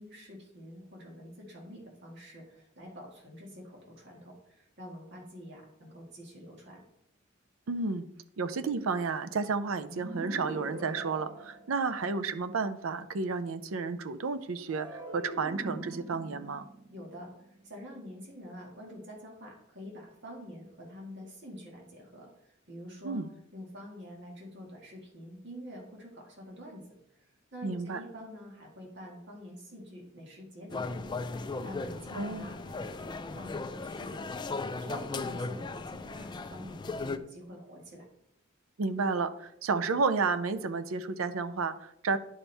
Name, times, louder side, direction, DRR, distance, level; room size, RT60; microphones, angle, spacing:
voice 1, 0.0-6.8 16.9-23.2 23.5-26.8 27.2-38.1, equal, 60° right, -2 dB, 1.9 m, -47 dB
voice 2, 7.7-8.1 8.4-16.7 23.0-23.3 27.6-28.0 32.1-32.5 38.8-42.2, right 4 dB, 90° right, 11 dB, 0.5 m, -31 dB
sound 1, 9.9-12.3 14.7-18.0, right 1 dB, 20° right, 1.2 m, -43 dB
sound 2, 30.7-37.2, left 3 dB, 20° left, 0.3 m, -37 dB
11.0 x 4.4 x 3.4 m, 0.77 s
head